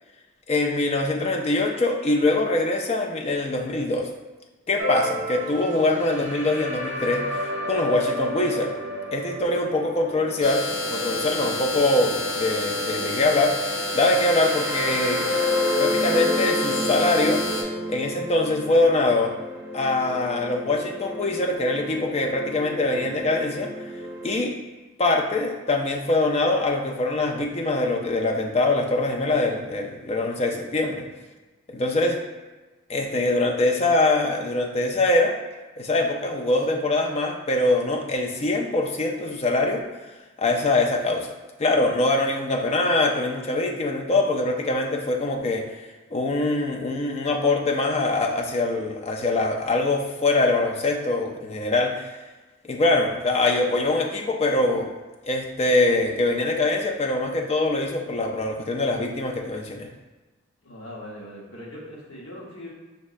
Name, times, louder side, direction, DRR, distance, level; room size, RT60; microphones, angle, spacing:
voice 1, 0.5-4.1 4.7-8.8 9.1-15.3 15.8-17.5 17.9-19.4 19.7-23.7 24.2-24.6 25.0-31.1 31.7-32.2 32.9-35.4 35.8-40.0 40.4-41.3 41.6-45.8 46.1-52.1 52.6-54.9 55.2-59.9, left 2 dB, 30° left, 2 dB, 0.4 m, -23 dB
sound 1, 4.8-24.4, left 1 dB, 55° right, 0.7 m, -31 dB
sound 2, 10.4-17.6, left 1 dB, 85° left, 0.8 m, -29 dB
voice 2, 60.6-62.7, left 1 dB, 65° left, -4 dB, 1.0 m, -40 dB
5.2 x 3.0 x 2.5 m, 1.2 s
head